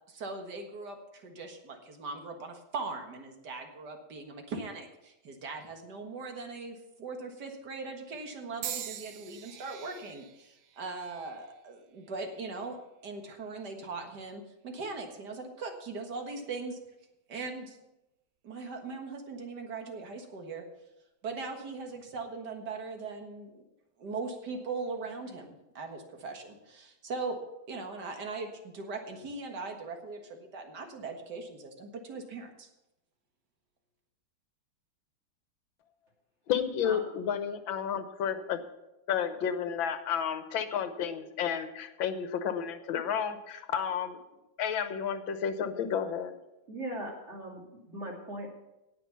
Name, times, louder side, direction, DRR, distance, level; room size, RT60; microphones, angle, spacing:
voice 1, 0.0-12.8 13.0-16.8 17.3-17.8 18.4-20.6 21.2-23.5 24.0-27.4 27.7-32.7, right 3 dB, 55° right, 4 dB, 2.1 m, -40 dB
sound 1, 8.6-12.8 13.5-13.9 14.9-15.0, right 10 dB, 75° right, 1.5 m, -44 dB
voice 2, 36.5-38.6 39.1-44.2 44.6-46.3, left 8 dB, 70° left, 9 dB, 1.7 m, -31 dB
voice 3, 46.7-47.6 47.9-48.5, right 1 dB, 35° right, -1 dB, 2.8 m, -39 dB
17.5 x 6.1 x 5.7 m, 0.92 s
omnidirectional pair, 2.2 m